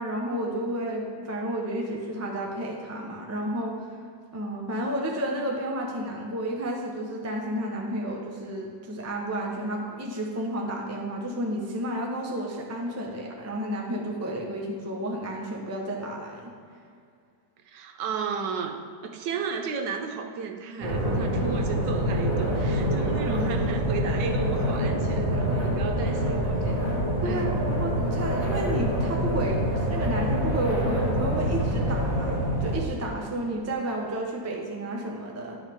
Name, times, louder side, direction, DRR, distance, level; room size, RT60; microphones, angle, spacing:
voice 1, 0.0-3.9 4.3-16.5 21.1-21.4 23.3-23.4 27.2-35.6, right 1 dB, 20° right, -1 dB, 0.4 m, -31 dB
voice 2, 17.7-18.8 19.0-26.9 27.3-27.5, right 5 dB, 75° right, 4 dB, 1.3 m, -34 dB
sound 1, 20.8-32.8, equal, 45° right, 2.0 m, -26 dB
12.0 x 5.4 x 3.6 m, 2.3 s
omnidirectional pair, 2.1 m